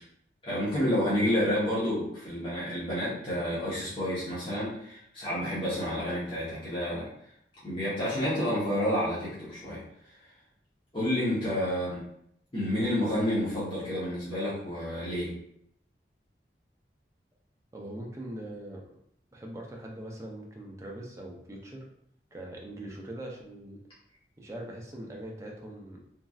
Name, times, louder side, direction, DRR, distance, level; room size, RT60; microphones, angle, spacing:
voice 1, 0.4-7.1 7.6-9.8 10.9-12.0 12.5-15.3, equal, 30° left, -10 dB, 0.9 m, -29 dB
voice 2, 17.7-18.8 19.3-21.9 22.3-23.8 24.4-26.0, right 1 dB, 15° right, 0 dB, 0.4 m, -41 dB
3.0 x 2.5 x 2.3 m, 0.72 s
head